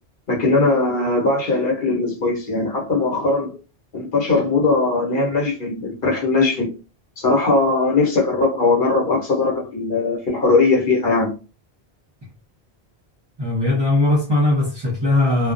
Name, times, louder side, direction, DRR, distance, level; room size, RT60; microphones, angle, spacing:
voice 1, 0.3-3.6 3.9-6.7 7.2-11.3, left 3 dB, 55° left, 1.0 m, -19 dB
voice 2, 13.4-15.5, left 2 dB, 30° right, 0.7 m, -19 dB
2.3 x 2.1 x 2.5 m
omnidirectional pair, 1.1 m